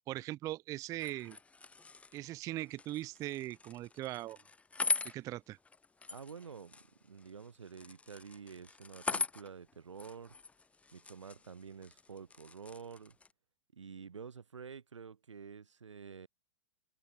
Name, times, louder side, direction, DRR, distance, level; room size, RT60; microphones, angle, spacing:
voice 1, 0.1-1.4 2.1-4.4 5.0-5.6, right 15 dB, 20° right, 0.3 m, -40 dB
sound 1, 0.9-13.3, left 4 dB, 10° left, 0.7 m, -42 dB
voice 2, 6.1-10.4 10.9-13.2 13.7-16.3, right 6 dB, 75° right, 3.4 m, -49 dB
open air
figure-of-eight pair, 105°, 15 cm